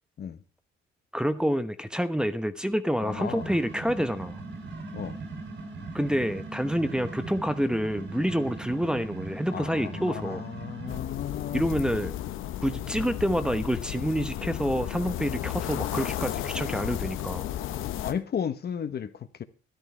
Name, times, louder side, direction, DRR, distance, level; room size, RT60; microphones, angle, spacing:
voice 1, 1.1-4.4 5.9-10.4 11.5-12.2 12.6-17.5, equal, 5° right, 1.0 m, -28 dB
voice 2, 3.0-3.5 4.9-5.2 9.5-11.6 17.8-19.4, left 8 dB, 55° left, 1.2 m, -34 dB
sound 1, 3.1-11.0, right 3 dB, 70° right, 6.5 m, -39 dB
sound 2, 10.9-18.1, left 12 dB, 90° left, 1.0 m, -33 dB
13.0 x 11.0 x 4.5 m
cardioid pair, 90°, 20 cm